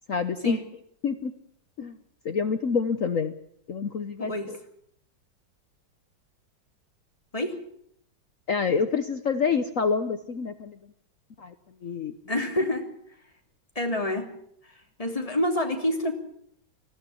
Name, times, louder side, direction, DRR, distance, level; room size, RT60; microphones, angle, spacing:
voice 1, 0.1-0.6 1.0-1.3 1.8-2.0 2.2-3.3 3.7-4.6 8.5-10.8 11.4-11.5 11.8-12.1, left 5 dB, 50° left, 10 dB, 1.2 m, -27 dB
voice 2, 4.2-4.5 7.3-7.6 12.3-12.8 13.7-14.3 15.0-16.1, left 1 dB, 15° left, 3 dB, 3.1 m, -27 dB
19.5 x 15.0 x 9.8 m, 0.69 s
omnidirectional pair, 2.1 m